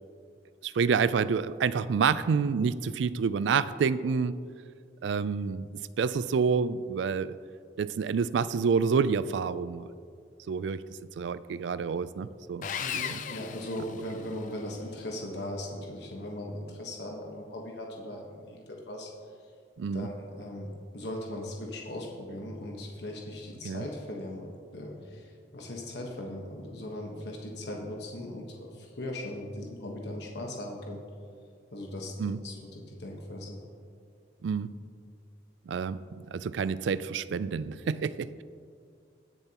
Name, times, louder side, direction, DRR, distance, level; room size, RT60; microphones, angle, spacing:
voice 1, 0.6-4.4 5.0-5.7 6.0-7.4 7.8-9.9 10.5-10.8 11.2-12.7 12.9-13.2 19.8-20.1 23.6-23.8 32.2-32.4 34.4-34.7 35.7-38.4, right 5 dB, 85° right, 16 dB, 0.3 m, -28 dB
Sawing, 12.6-14.5, left 8 dB, 45° left, 0.4 m, -36 dB
voice 2, 12.8-19.1 19.9-31.0 31.7-33.6, left 1 dB, 70° left, 0 dB, 1.3 m, -39 dB
19.0 x 6.9 x 2.9 m, 2.2 s
head